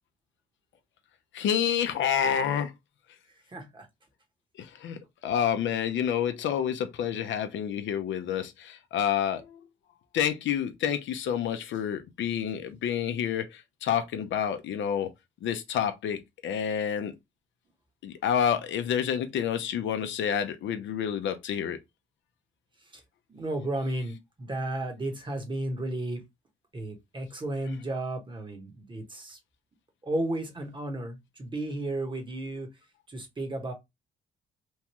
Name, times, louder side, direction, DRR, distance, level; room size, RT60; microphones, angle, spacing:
voice 1, 1.3-2.7 4.6-5.0 5.2-9.6 10.1-15.1 15.4-17.1 18.0-21.8, left 8 dB, 70° left, 0.6 m, -28 dB
voice 2, 3.5-3.9 22.9-23.0 23.3-26.2 26.7-29.4 30.0-32.7 33.1-33.7, right 1 dB, 25° right, 1.0 m, -33 dB
3.1 x 2.3 x 2.9 m
cardioid pair, 90°, 20 cm